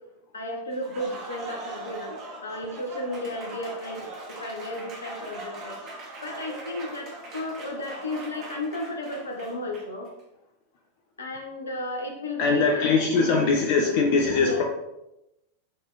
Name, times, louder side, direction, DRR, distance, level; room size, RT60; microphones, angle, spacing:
voice 1, 0.3-5.8 6.2-10.1 11.2-13.0 13.8-13.9 14.4-14.6, left 1 dB, 70° left, 2 dB, 1.2 m, -34 dB
Applause, 0.7-10.1, right 2 dB, 35° right, 1.8 m, -41 dB
voice 2, 12.4-14.6, left 4 dB, 50° left, 1 dB, 0.8 m, -22 dB
7.4 x 3.7 x 4.0 m, 0.91 s
figure-of-eight pair, 90°, 0 cm